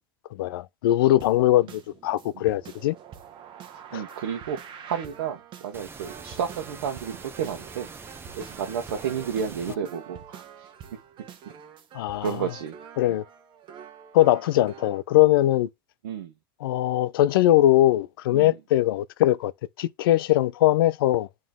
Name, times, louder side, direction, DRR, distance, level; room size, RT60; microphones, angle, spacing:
voice 1, 0.3-3.0 3.9-4.0 11.9-12.4 13.0-13.2 14.1-15.7 16.6-19.5 19.8-21.3, left 14 dB, 80° left, 0.5 m, -21 dB
sound 1, 1.2-15.0, right 8 dB, 45° right, 1.0 m, -46 dB
voice 2, 3.9-4.6 4.9-7.9 8.4-10.7 12.2-12.7 13.1-13.2 16.0-16.3 18.3-18.6, right 8 dB, 85° right, 1.1 m, -31 dB
sound 2, 5.7-9.7, right 4 dB, 20° right, 0.8 m, -43 dB
9.1 x 3.1 x 3.6 m
hypercardioid pair, 100°, 12 cm